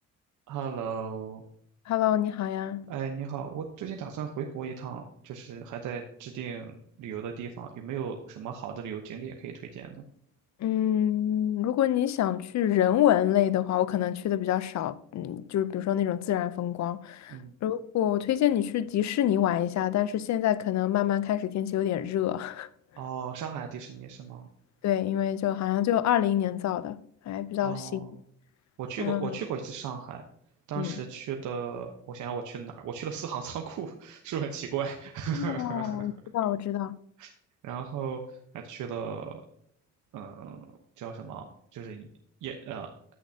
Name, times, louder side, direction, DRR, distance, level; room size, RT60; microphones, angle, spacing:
voice 1, 0.5-1.4 2.9-10.0 17.3-17.5 23.0-24.5 27.6-28.1 28.8-30.2 30.7-36.1 37.2-37.3 37.6-39.4 40.1-40.7 41.0-42.1 42.4-42.9, right 7 dB, 80° right, 1.0 m, -36 dB
voice 2, 1.9-2.9 10.6-22.7 24.8-27.0 27.3-28.0 29.0-29.4 30.8-30.9 35.3-37.0, left 11 dB, 65° left, 0.6 m, -27 dB
11.0 x 8.4 x 2.8 m
cardioid pair, 90°, 30 cm